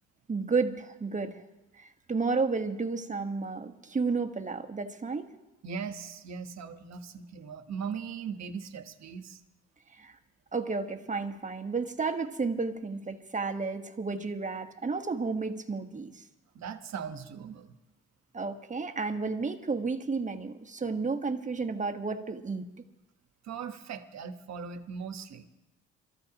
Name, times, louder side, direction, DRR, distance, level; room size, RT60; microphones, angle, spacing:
voice 1, 0.3-1.4 1.7-5.3 9.9-10.2 10.5-16.2 18.3-22.7, right 4 dB, 25° right, 6 dB, 1.3 m, -32 dB
voice 2, 5.6-9.4 16.5-17.8 23.4-25.4, right 6 dB, 60° right, 9 dB, 1.2 m, -39 dB
28.0 x 14.0 x 2.9 m, 0.98 s
cardioid pair, 90°, 30 cm